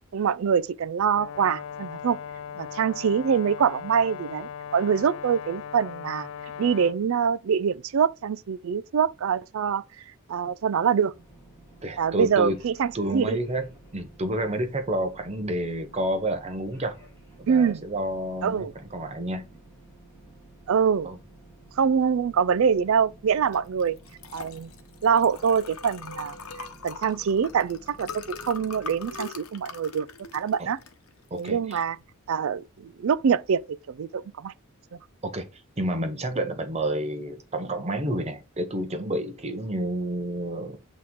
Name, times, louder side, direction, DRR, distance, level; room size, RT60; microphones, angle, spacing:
voice 1, 0.1-2.2 2.6-6.3 6.6-9.8 10.3-11.1 12.0-13.4 17.5-17.8 18.4-18.7 20.7-21.1 21.8-24.0 24.3-24.7 25.0-26.4 26.8-30.1 30.3-30.8 31.4-32.0 32.3-34.5, right 7 dB, 65° right, 0.4 m, -24 dB
Brass instrument, 1.1-7.0, left 8 dB, 65° left, 0.4 m, -38 dB
sound 1, 11.1-29.2, right 2 dB, 15° left, 3.4 m, -52 dB
voice 2, 11.8-12.6 12.9-16.9 17.4-19.5 21.0-21.2 30.6-30.7 31.3-31.8 35.2-40.8, right 1 dB, 30° right, 0.8 m, -30 dB
Liquid, 23.5-33.6, left 4 dB, 85° left, 0.9 m, -42 dB
8.3 x 3.0 x 3.7 m
head